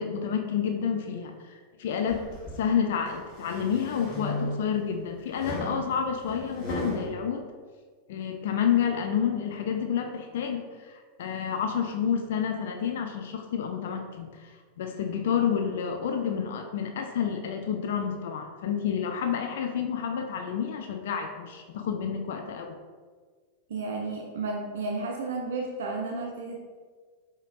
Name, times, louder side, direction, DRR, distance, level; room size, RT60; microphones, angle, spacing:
voice 1, 0.0-2.2 2.6-7.4 8.1-14.5 14.8-22.8, left 7 dB, 55° left, 4 dB, 0.3 m, -29 dB
sound 1, 2.1-2.6 3.1-4.8 5.3-7.1, equal, 20° left, 1.3 m, -36 dB
voice 2, 23.7-26.6, right 3 dB, 60° right, 0 dB, 0.4 m, -32 dB
4.8 x 2.8 x 2.4 m, 1.5 s
figure-of-eight pair, 90°, 0 cm